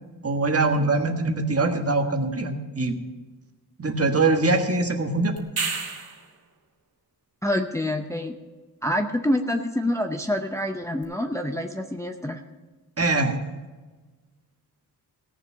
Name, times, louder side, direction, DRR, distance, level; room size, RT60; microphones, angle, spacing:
voice 1, 0.2-2.9 3.8-5.3 13.0-13.4, right 3 dB, 40° right, 4 dB, 1.5 m, -23 dB
sound 1, 5.4-6.3 11.0-11.1, right 4 dB, 65° right, 2.2 m, -30 dB
voice 2, 7.4-8.3 8.8-12.4, left 1 dB, 10° left, 4 dB, 0.6 m, -26 dB
17.5 x 7.2 x 5.6 m, 1.3 s
wide cardioid pair, 125°, 38 cm